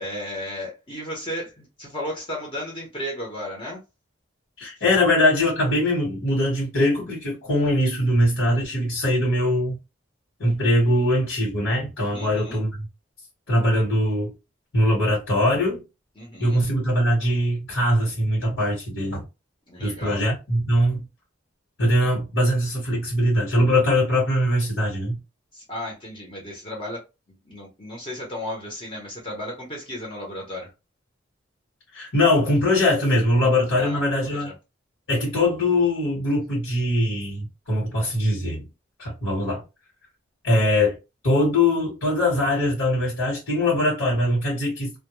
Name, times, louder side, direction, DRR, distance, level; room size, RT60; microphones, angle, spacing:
voice 1, 0.0-3.8 12.1-12.6 16.2-16.7 19.7-20.2 22.0-22.1 25.5-27.0 27.4-30.7 33.4-33.5 33.8-34.5, left 1 dB, 25° left, 0.8 m, -34 dB
voice 2, 4.6-9.8 10.4-12.9 13.5-14.3 14.7-15.8 16.4-19.2 19.8-21.1 21.8-25.2 31.9-34.5 35.1-38.7 39.0-39.6 40.4-41.0 41.2-44.9, left 1 dB, 70° left, 1.2 m, -22 dB
2.2 x 2.1 x 2.9 m
head